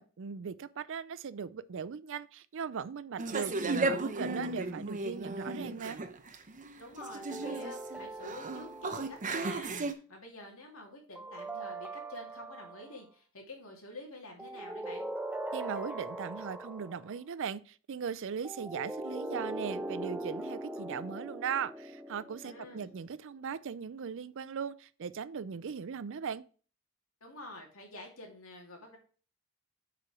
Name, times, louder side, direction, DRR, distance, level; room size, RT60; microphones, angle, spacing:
voice 1, 0.0-6.0 15.5-26.4, right 6 dB, 65° right, 0.5 m, -39 dB
sound 1, 3.2-9.9, right 3 dB, 40° right, 0.8 m, -35 dB
voice 2, 6.8-15.1 22.4-22.9 27.2-29.0, left 1 dB, 70° left, 2.5 m, -48 dB
sound 2, 7.0-9.5 11.2-13.0 14.4-17.1 18.4-23.0, right 1 dB, 5° right, 0.5 m, -41 dB
6.7 x 5.0 x 4.8 m
head